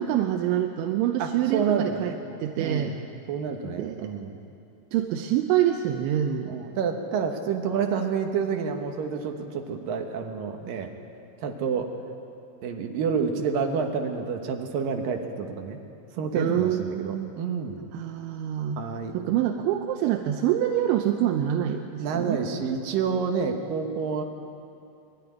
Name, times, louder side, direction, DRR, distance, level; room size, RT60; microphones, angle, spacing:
voice 1, 0.0-2.1 2.4-2.9 3.8-4.1 4.9-6.5 16.3-17.3 17.9-18.8 19.1-22.4, right 11 dB, 85° right, 4 dB, 3.1 m, -26 dB
voice 2, 1.2-2.2 2.6-3.0 3.3-4.4 6.4-10.9 11.4-11.9 12.6-15.8 16.1-17.8 18.8-19.1 22.0-24.2, right 6 dB, 65° right, 4 dB, 2.4 m, -28 dB
23.0 x 13.0 x 10.0 m, 2.6 s
omnidirectional pair, 5.3 m